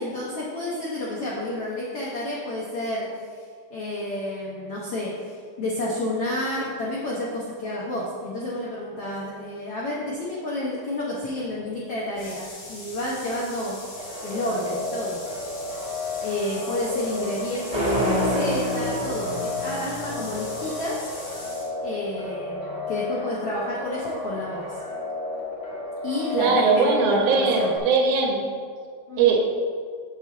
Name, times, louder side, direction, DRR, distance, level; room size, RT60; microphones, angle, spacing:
voice 1, 0.0-3.4 3.7-13.8 14.2-15.2 16.2-21.0 21.8-24.8 26.0-27.7 29.1-29.3, left 1 dB, 90° left, -5 dB, 1.2 m, -30 dB
sound 1, 12.1-21.7, left 2 dB, 70° left, 4.1 m, -41 dB
sound 2, 14.0-27.8, left 3 dB, 45° left, 0.9 m, -33 dB
sound 3, 17.7-20.6, equal, 55° right, 0.4 m, -27 dB
voice 2, 26.3-28.4 29.2-29.4, right 4 dB, 75° right, 1 dB, 1.5 m, -20 dB
7.9 x 7.5 x 3.9 m, 2.1 s
omnidirectional pair, 4.2 m